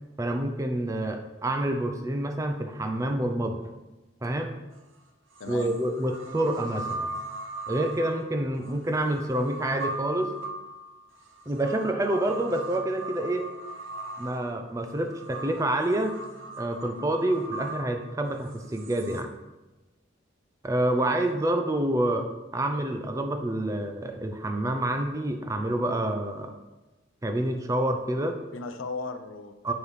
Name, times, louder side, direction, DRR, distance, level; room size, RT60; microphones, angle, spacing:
voice 1, 0.2-3.6 4.2-4.5 5.5-7.1 7.7-10.3 11.5-13.5 14.2-16.2 16.6-19.3 20.6-26.5 27.2-28.4 29.6-29.7, right 1 dB, 15° right, 5 dB, 0.4 m, -28 dB
sound 1, 4.7-4.8 5.4-19.2, right 2 dB, 75° right, 0.8 m, -39 dB
voice 2, 5.4-5.7 21.0-21.4 28.5-29.7, left 3 dB, 80° left, 8 dB, 0.5 m, -37 dB
7.3 x 4.9 x 3.2 m, 1.1 s
head